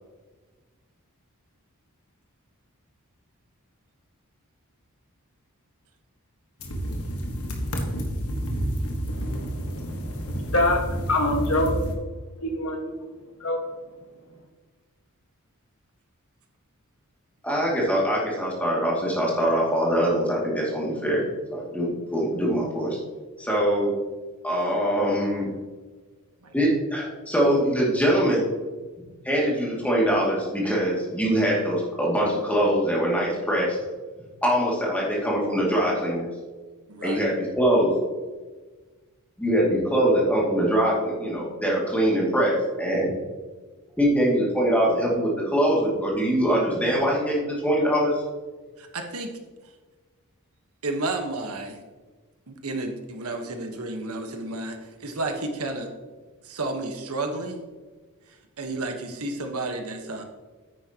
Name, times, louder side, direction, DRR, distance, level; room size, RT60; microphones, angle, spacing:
sound 1, 6.6-12.0, equal, 85° left, 1.5 m, -30 dB
voice 1, 9.1-14.5, left 1 dB, 65° left, 2 dB, 1.6 m, -28 dB
voice 2, 17.4-23.0 23.4-23.9 24.4-25.5 26.5-28.5 29.2-33.8 34.4-36.3 37.0-37.9 39.4-43.1 44.0-48.2, equal, 5° left, -4 dB, 2.4 m, -23 dB
voice 3, 36.9-37.2 48.8-49.3 50.8-51.8 52.5-55.9 56.4-57.6 58.3-60.2, right 2 dB, 80° right, 4 dB, 1.3 m, -32 dB
9.7 x 9.1 x 3.0 m, 1.3 s
head